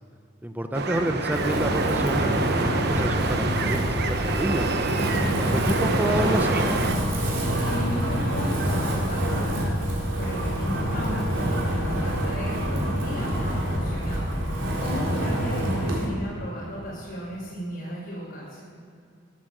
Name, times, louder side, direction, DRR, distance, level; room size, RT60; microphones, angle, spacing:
voice 1, 0.4-4.7 5.4-6.6, right 1 dB, 10° right, 7 dB, 0.7 m, -29 dB
sound 1, 0.7-7.0, right 3 dB, 60° right, 1.0 m, -27 dB
Wind, 1.3-16.0, equal, 75° right, 3.7 m, -26 dB
voice 2, 5.0-5.8 7.1-18.6, equal, 60° left, -9 dB, 4.6 m, -35 dB
sound 2, 5.2-13.8, left 1 dB, 75° left, 2.0 m, -39 dB
15.0 x 8.5 x 7.8 m, 2.4 s
head